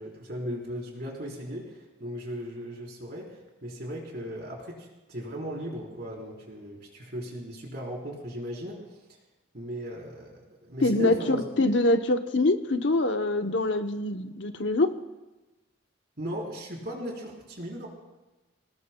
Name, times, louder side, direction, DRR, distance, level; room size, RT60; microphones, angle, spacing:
voice 1, 0.0-8.8 9.5-11.5 16.2-17.9, equal, 55° right, -2 dB, 4.2 m, -37 dB
voice 2, 10.8-15.0, left 2 dB, 70° left, 7 dB, 0.9 m, -24 dB
25.5 x 19.0 x 2.3 m, 1.1 s
head